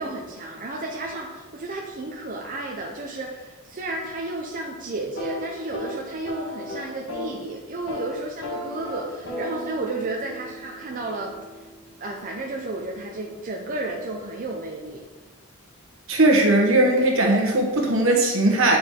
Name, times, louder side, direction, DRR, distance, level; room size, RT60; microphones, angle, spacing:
voice 1, 0.0-11.7 12.0-15.0, right 2 dB, 40° right, -1 dB, 0.7 m, -32 dB
sound 1, 5.0-7.4 7.7-8.1 8.4-12.3, left 1 dB, 60° left, 1.5 m, -36 dB
voice 2, 16.1-18.8, right 2 dB, 70° right, 1 dB, 1.3 m, -19 dB
8.1 x 4.8 x 3.7 m, 1.2 s
head